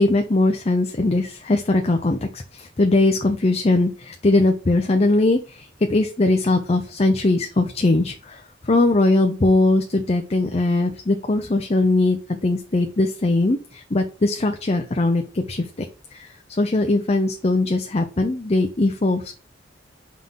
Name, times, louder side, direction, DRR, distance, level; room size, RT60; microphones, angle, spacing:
voice 1, 0.0-19.3, left 2 dB, 35° left, 4 dB, 0.6 m, -20 dB
5.7 x 3.7 x 5.6 m, 0.35 s
head